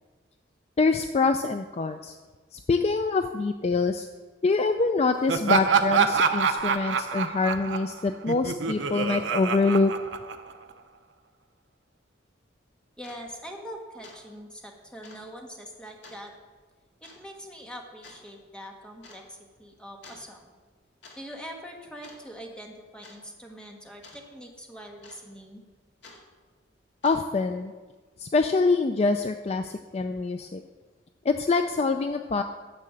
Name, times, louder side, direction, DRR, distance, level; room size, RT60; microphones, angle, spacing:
voice 1, 0.8-2.2 2.5-4.1 4.4-9.9 27.0-27.7 28.2-30.6 31.2-32.4, left 3 dB, 35° left, 7 dB, 0.4 m, -25 dB
Laughter, 5.3-10.7, right 5 dB, 70° right, 0.7 m, -26 dB
sound 1, 12.5-12.6 13.0-13.2 13.6-13.8 14.0-14.2 14.5-14.6 15.0-15.3 16.0-16.3 17.0-17.2 18.0-18.2 19.0-19.2 20.0-20.3 20.8-21.2 21.5-21.7 22.0-22.5 23.0-23.2 24.0-24.2 25.0-25.4 26.0-26.2 26.9-27.4, left 3 dB, 65° left, 2.2 m, -50 dB
voice 2, 13.0-16.3 17.0-20.5 21.1-25.6, equal, 5° left, 1 dB, 1.4 m, -43 dB
10.5 x 6.7 x 7.4 m, 1.4 s
head